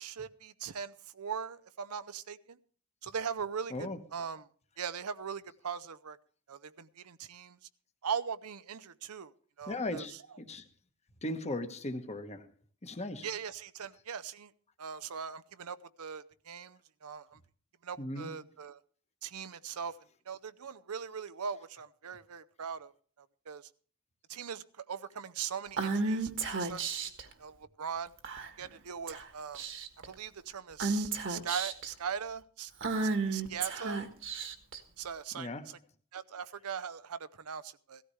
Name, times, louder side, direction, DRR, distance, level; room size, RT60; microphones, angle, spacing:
voice 1, 0.0-2.6 3.0-4.4 4.8-6.2 6.5-7.6 8.0-9.3 9.6-10.0 13.2-14.5 14.8-17.4 17.8-18.8 19.2-19.9 20.3-22.9 23.2-23.7 24.3-26.3 26.6-27.1 27.4-28.1 28.6-29.6 30.1-32.7 33.3-34.0 35.0-35.8 36.1-38.0, right 7 dB, 85° right, 0.7 m, -40 dB
voice 2, 3.7-4.0 9.7-10.7 11.2-12.5 12.8-13.3 18.0-18.4 35.3-35.7, left 1 dB, 30° left, 1.2 m, -38 dB
Female speech woman speaking / Whispering, 25.8-27.2 28.2-28.7 29.1-29.2 29.5-30.1 30.8-31.9 32.8-34.8, right 3 dB, 60° right, 1.5 m, -33 dB
17.0 x 14.0 x 3.2 m
head